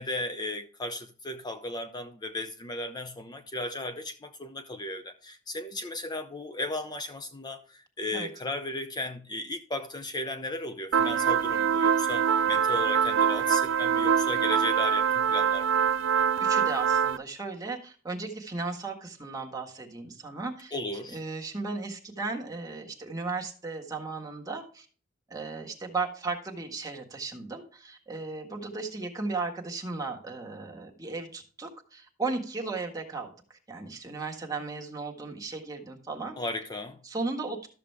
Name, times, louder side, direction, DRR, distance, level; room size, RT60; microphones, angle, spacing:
voice 1, 0.0-15.7 20.7-21.2 36.4-37.0, left 2 dB, 20° left, 0.6 m, -35 dB
sound 1, 10.9-17.2, right 7 dB, 90° right, 0.4 m, -24 dB
voice 2, 16.4-20.7 21.1-24.9 25.3-36.3 37.0-37.7, right 3 dB, 20° right, 1.6 m, -35 dB
13.0 x 6.9 x 3.4 m
head